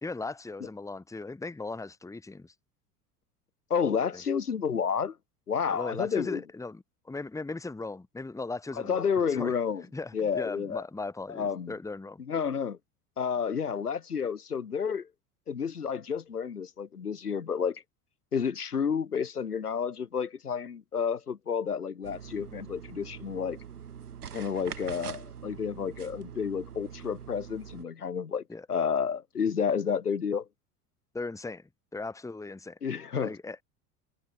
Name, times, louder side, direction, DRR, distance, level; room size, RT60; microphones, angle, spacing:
voice 1, 0.0-2.5 4.1-4.2 5.7-9.0 9.4-9.5 9.9-12.2 28.5-28.7 31.1-32.8 33.2-33.6, left 3 dB, 5° left, 1.7 m, -38 dB
voice 2, 3.7-5.2 5.5-6.4 8.8-9.8 10.1-10.8 11.3-11.7 12.2-12.8 13.2-15.1 15.5-17.8 18.3-23.6 24.3-28.4 28.7-30.5 32.8-33.3, left 6 dB, 80° left, 2.8 m, -30 dB
sound 1, 22.0-27.8, right 8 dB, 75° right, 2.0 m, -44 dB
figure-of-eight pair, 75°, 45 cm